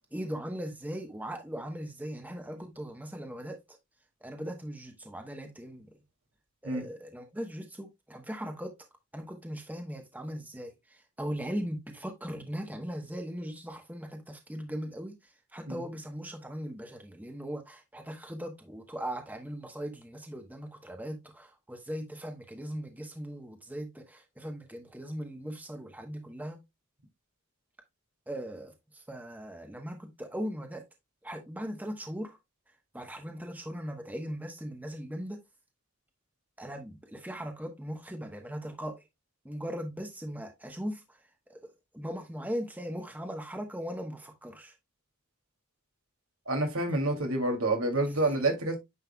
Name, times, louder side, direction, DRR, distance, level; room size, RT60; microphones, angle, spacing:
voice 1, 0.1-3.8 4.2-5.9 6.6-8.7 9.1-15.1 15.5-26.6 28.3-30.8 31.2-32.4 32.9-35.4 36.6-39.0 39.4-41.2 41.5-44.7 46.9-47.0, equal, 10° right, 1.0 m, -39 dB
voice 2, 46.5-48.8, right 2 dB, 80° right, 2.5 m, -28 dB
9.4 x 5.6 x 2.2 m
head